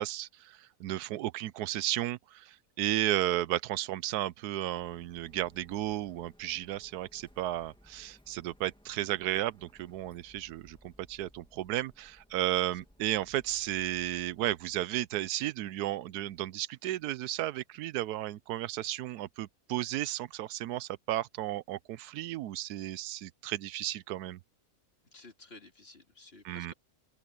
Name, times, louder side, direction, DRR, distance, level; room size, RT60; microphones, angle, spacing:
voice 1, 0.0-24.4 26.4-26.7, right 14 dB, 80° right, 1.1 m, -34 dB
Printer, 4.7-15.0, equal, 5° left, 1.4 m, -61 dB
voice 2, 25.1-26.7, left 2 dB, 40° left, 2.6 m, -53 dB
open air
omnidirectional pair, 1.6 m